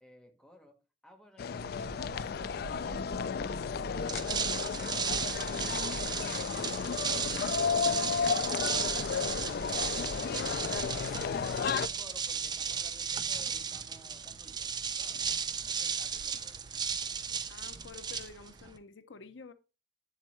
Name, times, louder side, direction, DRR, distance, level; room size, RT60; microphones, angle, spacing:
voice 1, 0.0-6.1 10.9-15.3 15.7-16.6, equal, 5° left, 1.5 m, -57 dB
sound 1, 1.4-11.9, left 6 dB, 55° left, 0.3 m, -33 dB
sound 2, 1.6-18.7, right 4 dB, 80° right, 0.4 m, -49 dB
sound 3, 4.0-18.8, right 6 dB, 25° right, 0.5 m, -35 dB
voice 2, 10.2-11.8 17.5-19.5, left 4 dB, 85° left, 0.7 m, -50 dB
7.9 x 7.5 x 3.1 m
head